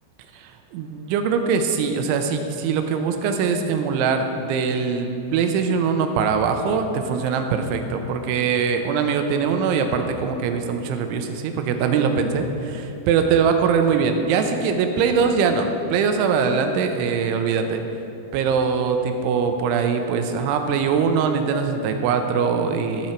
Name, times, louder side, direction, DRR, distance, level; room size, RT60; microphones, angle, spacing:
voice 1, 0.3-17.8 18.3-23.1, right 6 dB, 85° right, 6 dB, 3.0 m, -22 dB
13.5 x 7.0 x 4.4 m, 2.7 s
omnidirectional pair, 5.4 m